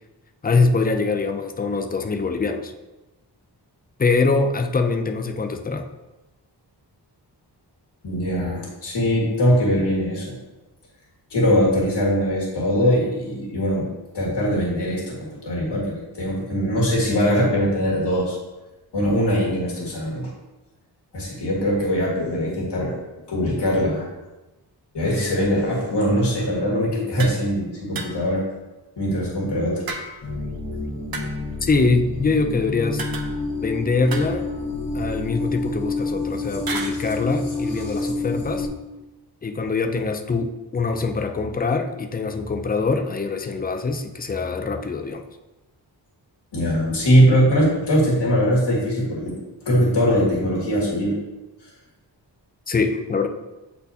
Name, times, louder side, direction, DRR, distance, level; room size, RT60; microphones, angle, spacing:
voice 1, 0.4-2.7 4.0-5.9 31.6-33.0 33.6-34.5 34.9-38.7 39.4-45.2 52.7-53.3, left 4 dB, 25° left, 6 dB, 0.4 m, -23 dB
voice 2, 8.0-10.3 11.3-13.9 14.1-18.4 18.9-20.3 21.1-22.9 23.3-24.1 24.9-28.4 29.0-29.9 46.5-49.3 49.7-51.2, equal, 70° left, -5 dB, 1.8 m, -21 dB
sound 1, 27.2-27.4 28.0-28.4 29.9-30.4 31.1-31.6 33.0-33.6 34.1-34.9 36.7-37.0, right 4 dB, 55° right, 0.7 m, -34 dB
sound 2, 30.2-38.7, left 2 dB, 50° left, 1.5 m, -28 dB
8.0 x 4.2 x 2.8 m, 1.1 s
wide cardioid pair, 140°, 43 cm